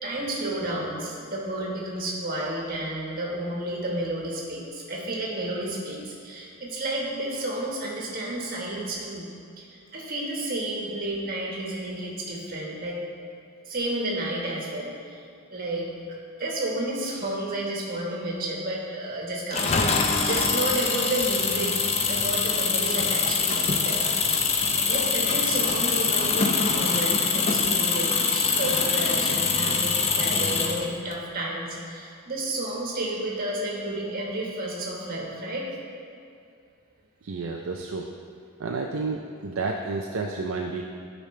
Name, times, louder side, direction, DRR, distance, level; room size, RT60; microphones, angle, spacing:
voice 1, 0.0-9.2 9.6-13.0 13.6-15.2 15.5-15.9 16.4-19.9 20.2-21.8 22.0-24.6 24.9-35.7, right 1 dB, 40° right, -3 dB, 1.4 m, -31 dB
Engine, 19.5-31.1, left 4 dB, 30° left, 0.5 m, -24 dB
voice 2, 37.2-38.1 38.6-40.8, right 3 dB, 60° right, 1 dB, 0.4 m, -30 dB
11.5 x 5.2 x 3.2 m, 2.4 s
head